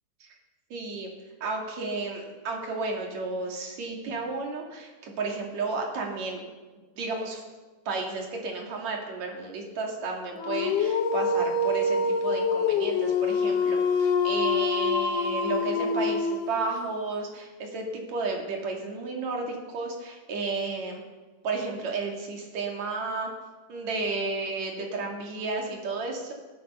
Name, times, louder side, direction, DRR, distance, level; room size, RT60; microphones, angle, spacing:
voice 1, 0.7-1.1 1.4-6.4 7.0-7.4 7.9-21.0 21.4-23.3 23.7-26.3, right 3 dB, 55° right, 1 dB, 3.5 m, -32 dB
Dog, 10.4-16.7, left 4 dB, 70° left, 2.5 m, -25 dB
17.5 x 12.0 x 5.5 m, 1.3 s
omnidirectional pair, 4.1 m